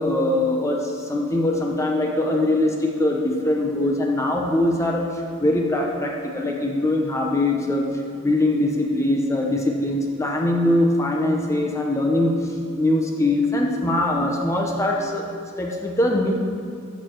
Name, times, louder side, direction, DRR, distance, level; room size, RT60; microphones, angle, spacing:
voice 1, 0.0-5.1 5.4-7.9 8.2-12.4 12.8-15.3 15.6-16.3, left 1 dB, 15° left, 0 dB, 0.7 m, -22 dB
12.5 x 6.5 x 4.5 m, 2.4 s
head